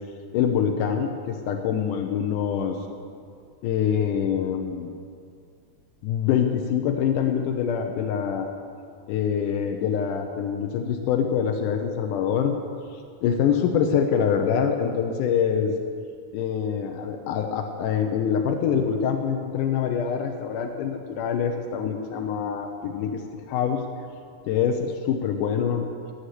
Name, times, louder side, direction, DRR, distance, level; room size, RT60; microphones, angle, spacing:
voice 1, 0.3-2.8 3.6-4.9 6.0-8.5 9.1-12.5 12.9-15.7 16.3-23.8 24.4-25.9, left 7 dB, 85° left, 4 dB, 2.4 m, -25 dB
16.5 x 6.5 x 9.8 m, 2.2 s
omnidirectional pair, 3.6 m